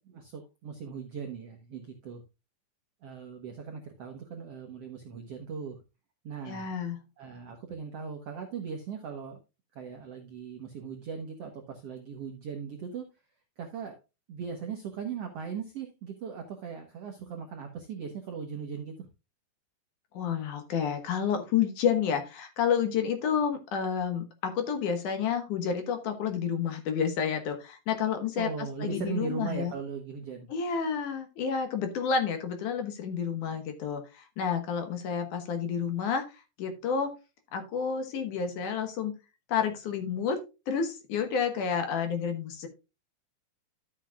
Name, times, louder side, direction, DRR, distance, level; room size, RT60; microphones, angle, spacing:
voice 1, 0.0-2.2 3.0-5.8 6.2-6.7 7.2-9.4 9.7-13.1 13.6-14.0 14.3-19.1 28.4-30.5, right 6 dB, 70° right, 3 dB, 1.5 m, -39 dB
voice 2, 6.5-7.0 20.1-29.7 30.5-37.1 37.5-39.1 39.5-40.4 40.7-42.7, left 7 dB, 65° left, 7 dB, 2.5 m, -30 dB
12.0 x 7.7 x 2.3 m, 0.27 s
omnidirectional pair, 4.3 m